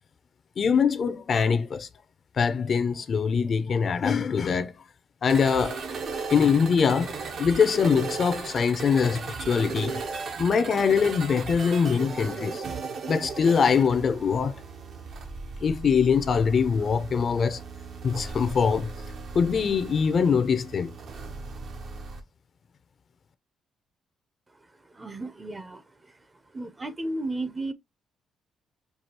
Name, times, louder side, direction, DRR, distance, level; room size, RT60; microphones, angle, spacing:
voice 1, 0.6-1.9 2.3-4.7 5.2-5.9 6.3-10.0 10.4-12.6 13.1-14.5 15.6-17.6 18.0-18.9 19.3-20.9, left 6 dB, 50° left, 0.5 m, -23 dB
sound 1, 5.3-22.2, right 4 dB, 60° right, 0.9 m, -37 dB
voice 2, 24.6-26.3 26.5-27.7, right 2 dB, 20° right, 0.6 m, -34 dB
4.7 x 2.4 x 2.8 m
cardioid pair, 90°, 0 cm